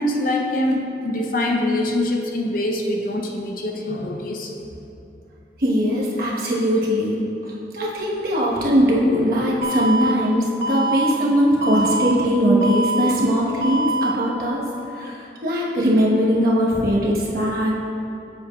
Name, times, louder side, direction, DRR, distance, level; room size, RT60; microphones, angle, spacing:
voice 1, 0.0-4.5, left 1 dB, 50° left, 1 dB, 0.6 m, -24 dB
voice 2, 5.6-7.4 7.7-14.6 15.0-17.7, equal, 55° right, -5 dB, 1.1 m, -20 dB
Alarm, 9.6-10.1 10.6-11.1 11.6-12.1 12.6-13.1 13.6-14.1, right 1 dB, 85° right, 0.7 m, -24 dB
7.4 x 7.2 x 2.3 m, 2.7 s
head